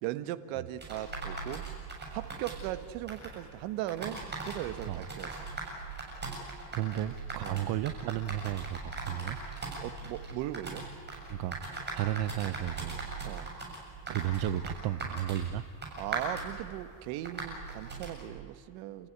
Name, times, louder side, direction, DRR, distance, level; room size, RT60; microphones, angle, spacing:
voice 1, 0.0-1.6 2.1-5.4 7.4-7.7 9.8-10.8 13.2-13.5 16.0-19.1, right 14 dB, 75° right, 12 dB, 1.5 m, -38 dB
sound 1, 0.8-18.3, right 3 dB, 20° right, 7.1 m, -40 dB
voice 2, 6.7-9.4 11.3-11.6 11.9-13.0 14.1-15.6, right 12 dB, 50° right, 15 dB, 0.9 m, -33 dB
29.5 x 15.0 x 9.6 m, 2.6 s
cardioid pair, 135°, 48 cm